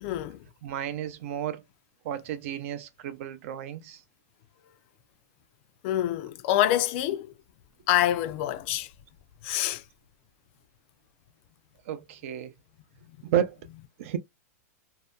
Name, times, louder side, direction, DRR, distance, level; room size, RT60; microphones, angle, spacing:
voice 1, 0.0-0.4 5.8-7.3 7.9-8.9 9.4-9.8, left 13 dB, 45° left, 0.3 m, -26 dB
voice 2, 0.6-1.6 2.0-4.0 11.9-12.5 13.2-13.6 14.0-14.2, right 10 dB, 55° right, 0.5 m, -31 dB
2.7 x 2.1 x 2.2 m
supercardioid pair, 150°, 9 cm